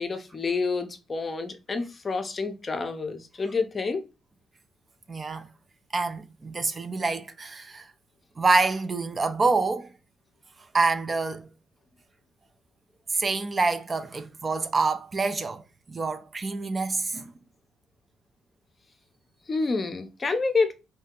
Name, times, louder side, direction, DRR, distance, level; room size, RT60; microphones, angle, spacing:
voice 1, 0.0-4.0 19.5-20.7, left 4 dB, 35° left, 0.5 m, -28 dB
voice 2, 5.1-5.5 5.9-7.9 8.4-9.9 10.7-11.5 13.1-17.3, right 3 dB, 30° right, 0.4 m, -26 dB
2.7 x 2.7 x 3.6 m
cardioid pair, 90°, 0 cm